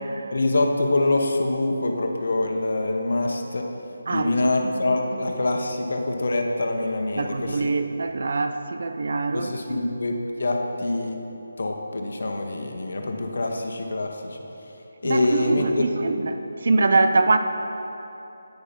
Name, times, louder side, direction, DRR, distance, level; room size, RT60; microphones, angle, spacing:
voice 1, 0.3-3.7 4.1-7.7 9.3-11.2 11.6-14.4 15.0-15.9, left 2 dB, 65° left, 2 dB, 1.2 m, -25 dB
voice 2, 4.1-5.0 7.2-9.8 15.0-17.4, right 3 dB, 60° right, 7 dB, 0.6 m, -24 dB
10.0 x 9.5 x 5.3 m, 2.9 s
figure-of-eight pair, 160°, 0 cm